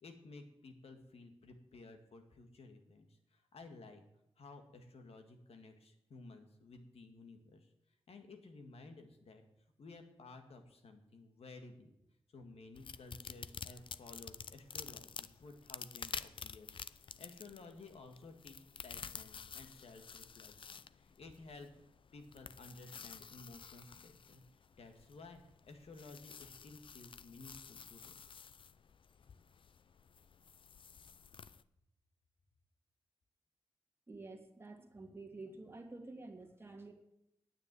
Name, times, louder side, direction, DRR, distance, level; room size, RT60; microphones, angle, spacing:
voice 1, 0.0-4.0 4.4-7.7 8.1-9.4 9.8-11.9 12.3-18.6 18.8-21.7 22.1-24.4 24.8-28.1, left 3 dB, 85° left, 6 dB, 1.8 m, -55 dB
sound 1, 12.7-31.6, left 6 dB, 60° left, 0.5 m, -50 dB
voice 2, 34.1-36.9, right 3 dB, 25° right, 2 dB, 2.1 m, -50 dB
9.7 x 8.9 x 9.1 m, 0.83 s
wide cardioid pair, 125°, 10 cm